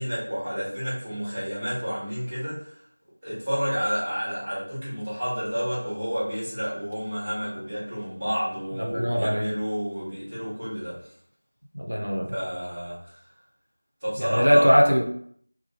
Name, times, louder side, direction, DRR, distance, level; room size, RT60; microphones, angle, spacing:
voice 1, 0.0-2.8 3.2-11.1 12.3-13.3 14.0-14.7, equal, 10° right, -17 dB, 1.0 m, -30 dB
voice 2, 8.8-9.5 11.7-12.3 14.2-15.1, equal, 90° right, 0 dB, 0.7 m, -21 dB
3.0 x 2.1 x 2.8 m, 0.64 s
figure-of-eight pair, 175°, 0 cm